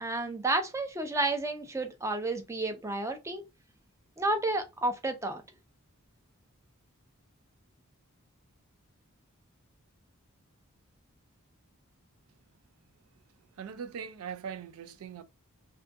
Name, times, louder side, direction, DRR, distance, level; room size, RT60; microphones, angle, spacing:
voice 1, 0.0-3.4 4.2-5.4, right 2 dB, 15° right, 0.5 m, -31 dB
voice 2, 13.6-15.2, right 7 dB, 80° right, 0.4 m, -40 dB
2.6 x 2.5 x 3.3 m
head